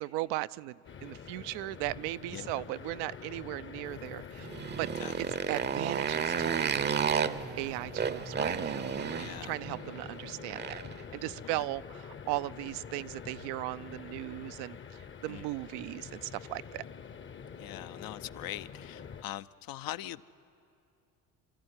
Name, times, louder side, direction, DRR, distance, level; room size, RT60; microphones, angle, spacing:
voice 1, 0.0-4.5 4.8-4.9 5.2-7.0 7.6-10.6 11.1-16.8, right 17 dB, 70° right, 0.5 m, -37 dB
sound 1, 0.8-19.2, left 6 dB, 30° left, 0.8 m, -46 dB
sound 2, 3.8-9.6, right 6 dB, 90° right, 2.5 m, -59 dB
Motorcycle, 4.4-11.0, right 7 dB, 25° right, 0.7 m, -32 dB
voice 2, 9.2-9.5 11.4-11.7 15.3-15.5 17.6-20.2, left 14 dB, 60° left, 0.6 m, -42 dB
27.5 x 13.5 x 9.7 m
supercardioid pair, 80°, 40 cm